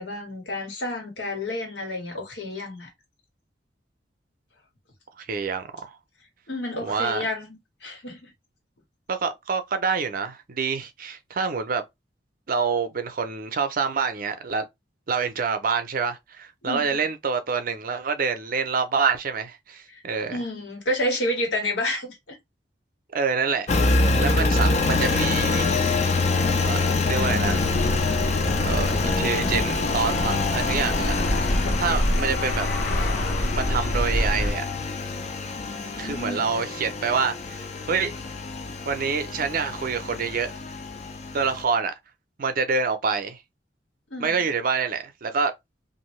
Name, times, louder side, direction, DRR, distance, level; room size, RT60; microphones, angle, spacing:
voice 1, 0.0-2.9 6.5-8.3 16.6-17.0 19.9-20.0 20.3-22.4 35.6-36.5 44.1-44.5, left 1 dB, 80° left, 1.4 m, -30 dB
voice 2, 5.2-6.0 6.8-7.3 9.1-11.8 12.5-14.7 15.1-20.4 23.1-25.7 26.6-26.8 27.0-27.7 28.6-31.1 31.8-32.7 33.5-34.6 36.0-38.1 38.9-40.5 41.3-41.9 42.4-43.4 44.2-45.5, right 5 dB, 50° right, 0.5 m, -27 dB
Engine, 23.7-41.6, left 3 dB, 40° left, 0.5 m, -26 dB
sound 1, 27.1-34.5, equal, 60° left, 0.9 m, -27 dB
2.7 x 2.6 x 3.1 m
head